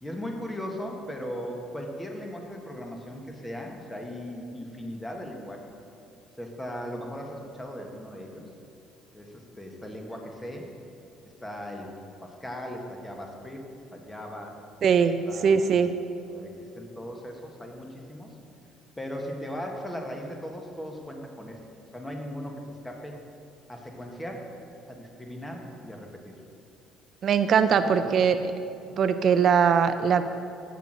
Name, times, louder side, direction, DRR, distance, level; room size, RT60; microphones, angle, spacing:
voice 1, 0.0-5.6 6.4-8.4 9.1-10.7 11.4-11.9 12.2-13.6 13.9-14.6 15.2-15.9 16.3-18.3 19.0-21.6 21.9-23.2 23.7-24.4 24.9-26.4 27.6-28.3 28.8-28.9, equal, 10° left, 2 dB, 1.5 m, -38 dB
voice 2, 14.8-15.9 27.2-28.5 29.0-30.2, right 6 dB, 55° right, 9 dB, 0.4 m, -21 dB
7.8 x 6.7 x 6.3 m, 2.7 s
supercardioid pair, 80°, 0 cm